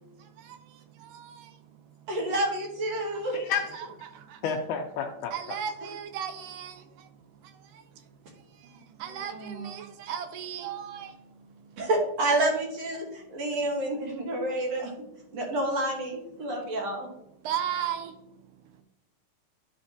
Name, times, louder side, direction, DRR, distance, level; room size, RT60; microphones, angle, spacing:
voice 1, 0.2-2.1 2.9-4.4 5.3-7.1 7.4-11.9 13.5-13.6 14.4-14.5 16.4-16.8 17.4-18.6, right 9 dB, 80° right, 2.2 m, -38 dB
voice 2, 2.1-3.4 9.2-9.7 11.8-13.0 13.3-14.9 15.3-17.1, right 1 dB, 60° right, 2.0 m, -29 dB
voice 3, 3.3-3.8 4.4-5.3, left 6 dB, 80° left, 1.8 m, -30 dB
11.5 x 4.3 x 2.6 m
omnidirectional pair, 4.0 m